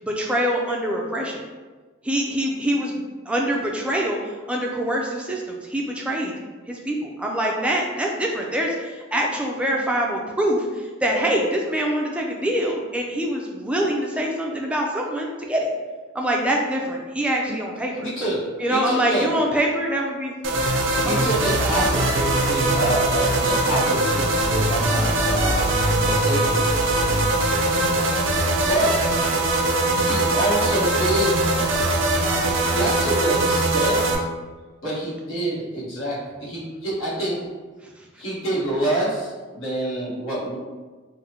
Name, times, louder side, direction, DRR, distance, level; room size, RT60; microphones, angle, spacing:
voice 1, 0.0-1.4 2.0-6.3 6.7-15.7 16.1-18.1 18.6-20.4 21.1-21.4 38.0-38.1, right 1 dB, 5° right, -1 dB, 0.3 m, -24 dB
voice 2, 18.0-19.3 21.0-25.7 26.0-26.6 28.7-29.1 29.9-31.4 32.7-34.1 34.8-37.4 38.2-40.6, right 1 dB, 85° left, -8 dB, 1.2 m, -26 dB
sound 1, 20.4-34.2, right 2 dB, 70° right, 0.5 m, -21 dB
3.7 x 2.0 x 2.8 m, 1.3 s
head